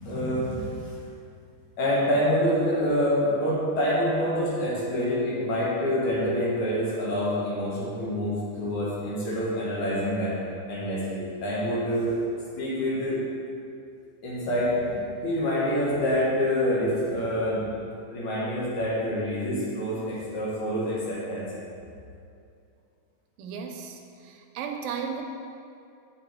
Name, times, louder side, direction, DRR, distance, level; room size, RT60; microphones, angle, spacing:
voice 1, 0.0-0.9 1.8-10.4 10.7-12.2 12.6-13.2 14.2-17.6 18.1-21.5, equal, 60° left, -6 dB, 2.9 m, -26 dB
voice 2, 23.4-25.2, right 6 dB, 90° right, 3 dB, 2.5 m, -35 dB
8.7 x 6.7 x 4.6 m, 2.5 s
omnidirectional pair, 4.2 m